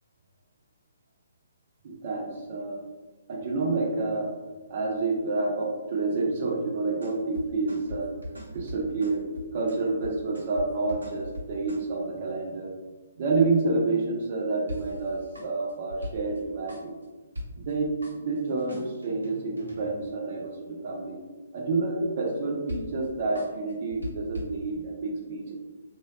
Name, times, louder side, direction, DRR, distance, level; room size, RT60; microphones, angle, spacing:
voice 1, 1.8-2.8 3.3-4.3 4.7-9.2 9.5-12.7 13.2-16.9 17.7-17.9 18.2-21.2 21.5-25.5, right 3 dB, 45° right, -1 dB, 0.6 m, -29 dB
sound 1, 6.9-11.9 14.7-16.4 16.7-17.0 17.3-17.7 18.0-20.0 22.7-23.1 23.3-24.5, equal, 80° right, 0.8 m, -40 dB
2.6 x 2.2 x 2.4 m, 1.2 s
figure-of-eight pair, 135°, 0 cm